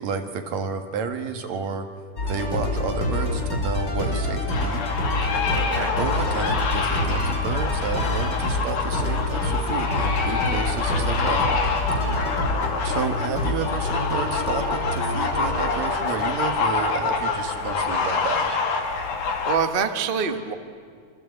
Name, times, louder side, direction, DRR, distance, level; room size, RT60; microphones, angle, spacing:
voice 1, 0.0-1.9 2.3-4.8 6.0-11.6 12.8-18.5, right 5 dB, 65° right, 6 dB, 2.9 m, -31 dB
sound 1, 2.2-16.3, left 2 dB, 35° left, 5.5 m, -27 dB
sound 2, 4.5-19.6, left 4 dB, 75° left, 3.8 m, -26 dB
voice 2, 5.6-5.9 12.0-12.3 19.5-20.5, right 6 dB, 50° right, 7 dB, 0.6 m, -26 dB
27.5 x 26.0 x 8.2 m, 2.2 s
omnidirectional pair, 3.5 m